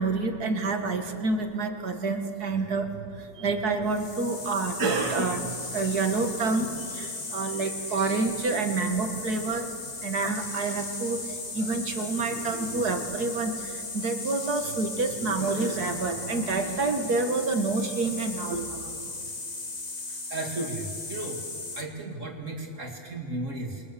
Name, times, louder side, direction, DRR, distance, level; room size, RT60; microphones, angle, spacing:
voice 1, 0.0-9.7 10.0-19.0, right 3 dB, 85° right, 5 dB, 2.4 m, -28 dB
sound 1, 3.9-21.8, left 3 dB, 30° left, 1.6 m, -37 dB
voice 2, 20.3-21.4 21.7-23.8, right 2 dB, 55° right, 1 dB, 2.9 m, -34 dB
29.0 x 22.0 x 7.0 m, 2.7 s
omnidirectional pair, 1.6 m